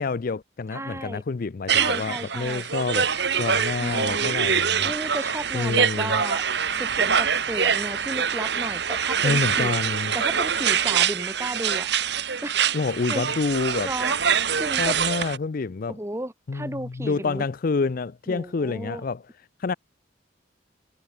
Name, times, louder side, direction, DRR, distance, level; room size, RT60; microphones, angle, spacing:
voice 1, 0.0-3.1 3.4-4.9 5.5-6.2 9.2-10.1 12.7-13.9 14.8-16.0 16.5-19.2 19.6-19.7, left 4 dB, 50° left, 0.5 m, -28 dB
voice 2, 0.7-1.2 1.8-2.7 3.7-4.3 4.8-6.4 6.7-9.7 10.1-11.9 12.4-12.7 13.1-13.3 13.8-14.2 14.6-14.9 15.9-17.4 18.3-19.0, right 1 dB, 15° right, 3.0 m, -34 dB
sound 1, 1.7-15.4, right 7 dB, 60° right, 1.8 m, -24 dB
head